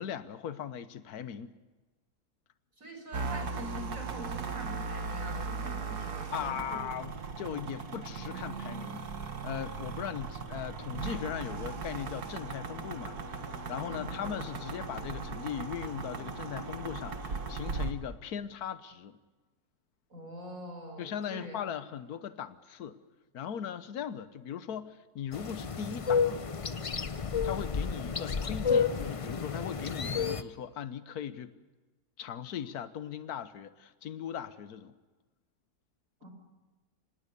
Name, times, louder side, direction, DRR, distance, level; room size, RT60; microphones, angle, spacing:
voice 1, 0.0-1.6 6.3-19.2 21.0-23.0 23.3-26.5 27.4-31.5 32.2-34.9, left 9 dB, 70° left, 13 dB, 1.5 m, -39 dB
voice 2, 2.8-6.9 13.8-14.4 20.1-21.7 36.2-36.3, equal, 55° right, 4 dB, 5.9 m, -44 dB
sound 1, 3.1-17.9, right 4 dB, 75° right, 2.1 m, -38 dB
sound 2, 25.3-30.4, left 6 dB, 40° left, 0.5 m, -31 dB
25.5 x 19.5 x 6.9 m, 1.2 s
omnidirectional pair, 1.7 m